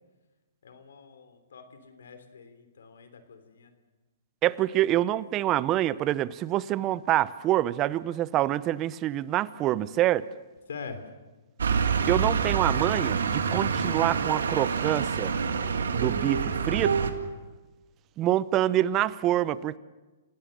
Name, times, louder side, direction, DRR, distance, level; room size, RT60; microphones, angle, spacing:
voice 1, 0.6-3.7 10.7-11.0, left 5 dB, 80° left, 3.3 m, -44 dB
voice 2, 4.4-10.3 12.1-15.3 15.9-17.1 18.2-19.8, right 14 dB, 30° right, 0.7 m, -26 dB
sound 1, 11.6-17.1, right 6 dB, 85° right, 2.0 m, -27 dB
28.5 x 17.5 x 6.7 m
hypercardioid pair, 135°, 0 cm